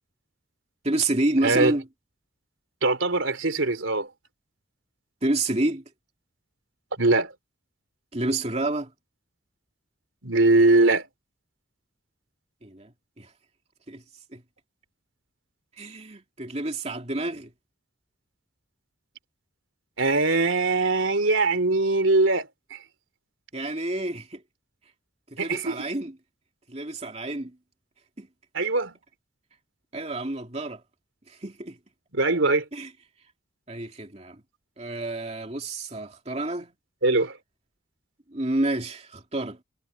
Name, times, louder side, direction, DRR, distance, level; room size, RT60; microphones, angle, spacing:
voice 1, 0.8-1.9 5.2-5.8 8.1-8.9 12.6-13.3 13.9-14.0 14.3-14.4 15.8-17.5 23.5-24.4 25.3-26.2 26.7-27.6 28.2-28.3 29.9-30.8 31.3-31.8 32.7-32.9 33.7-34.4 34.8-36.7 38.3-39.6, right 2 dB, 35° right, 2.6 m, -29 dB
voice 2, 1.4-1.7 2.8-4.1 7.0-7.3 10.2-11.1 20.0-22.5 25.4-25.8 28.5-29.0 32.1-32.6 37.0-37.3, right 2 dB, 80° right, 3.2 m, -21 dB
head